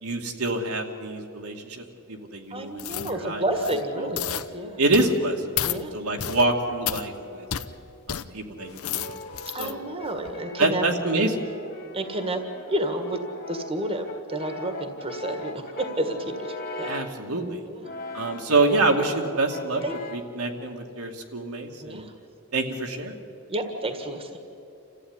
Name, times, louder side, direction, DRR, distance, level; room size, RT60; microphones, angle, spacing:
voice 1, 0.0-3.4 4.0-4.1 4.8-5.4 5.9-7.5 8.1-9.2 9.6-9.8 10.6-11.4 16.8-17.6 18.1-19.8 20.1-22.0 22.5-23.2, right 2 dB, 75° right, 2 dB, 2.5 m, -26 dB
voice 2, 2.5-4.8 5.6-5.9 9.5-10.8 11.9-12.4 12.7-13.2 13.5-16.9 17.7-17.8 19.8-20.0 21.8-22.1 23.5-24.3, right 1 dB, 25° right, 6 dB, 1.8 m, -30 dB
sound 1, 2.8-3.1 3.5-3.8 4.2-4.5 4.9-5.2 5.6-5.8 6.2-6.4 6.9-7.0 7.5-7.7 8.1-8.2 8.7-9.7 10.2-10.3, left 10 dB, 70° left, 0.8 m, -31 dB
Brass instrument, 3.2-5.1 5.9-7.9 8.6-17.2 17.8-19.2 19.5-20.3, left 2 dB, 45° left, 1.9 m, -40 dB
28.0 x 15.0 x 9.8 m, 2.8 s
head